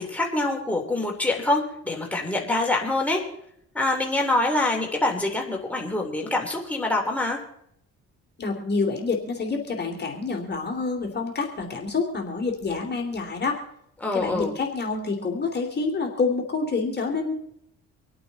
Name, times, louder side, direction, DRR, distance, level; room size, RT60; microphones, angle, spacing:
voice 1, 0.0-3.2 3.7-7.4 14.0-14.5, left 2 dB, 5° left, -1 dB, 3.0 m, -25 dB
voice 2, 8.4-13.6 14.1-17.3, left 4 dB, 35° left, 1 dB, 2.8 m, -27 dB
26.0 x 8.7 x 4.0 m, 0.73 s
cardioid pair, 90°, 30 cm